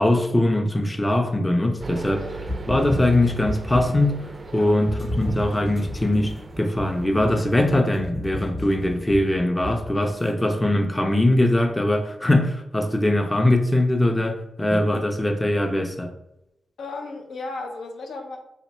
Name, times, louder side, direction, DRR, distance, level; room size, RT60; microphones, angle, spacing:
voice 1, 0.0-2.4 2.7-16.1, left 1 dB, 20° left, 0.5 m, -21 dB
sound 1, 1.8-7.8, right 3 dB, 45° right, 0.3 m, -38 dB
sound 2, 2.4-4.1 4.9-10.3, left 1 dB, 40° left, 0.9 m, -33 dB
voice 2, 16.8-18.4, left 3 dB, 85° left, 0.6 m, -34 dB
2.9 x 2.2 x 4.1 m
cardioid pair, 55°, 0 cm